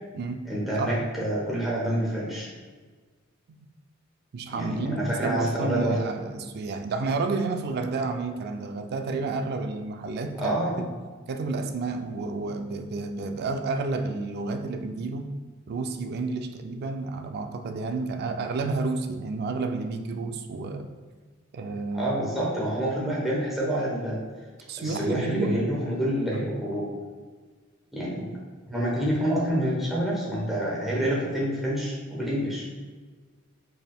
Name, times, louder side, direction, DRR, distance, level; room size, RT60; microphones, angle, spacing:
voice 1, 0.5-2.5 4.5-6.0 10.4-10.7 21.9-24.2 24.8-26.9 27.9-28.3 28.6-32.7, right 1 dB, ahead, -7 dB, 0.9 m, -27 dB
voice 2, 4.3-10.9 11.3-15.4 15.7-20.9 21.5-22.2 24.7-25.6 26.3-26.5, right 3 dB, 50° right, 6 dB, 0.3 m, -30 dB
4.2 x 3.4 x 2.3 m, 1.4 s
head